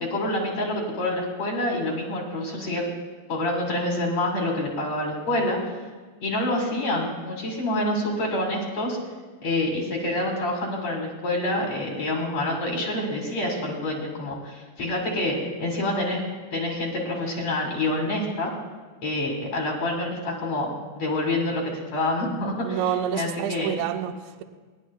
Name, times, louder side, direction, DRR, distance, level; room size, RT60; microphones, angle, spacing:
voice 1, 0.1-2.8 3.3-5.7 6.2-9.0 9.4-16.2 16.5-18.5 19.0-22.8 23.1-23.8, left 1 dB, 65° left, -1 dB, 1.7 m, -27 dB
voice 2, 22.6-24.4, right 9 dB, 90° right, 6 dB, 2.6 m, -28 dB
27.5 x 10.0 x 2.2 m, 1.4 s
omnidirectional pair, 5.8 m